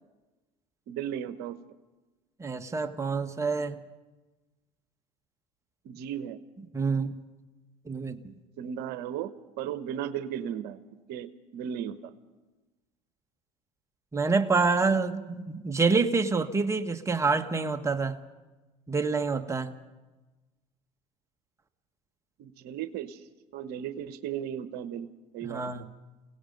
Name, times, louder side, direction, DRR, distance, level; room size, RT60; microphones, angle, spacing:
voice 1, 0.9-1.6 5.8-6.4 8.6-10.8 11.1-12.1 22.4-23.3 23.5-25.1 25.3-25.7, right 9 dB, 65° right, 11 dB, 1.1 m, -35 dB
voice 2, 2.4-3.8 6.7-7.1 7.8-8.3 14.1-18.2 18.9-19.7 25.4-25.8, right 4 dB, 15° right, 6 dB, 1.5 m, -27 dB
28.5 x 17.5 x 5.3 m, 1.2 s
supercardioid pair, 85°, 18 cm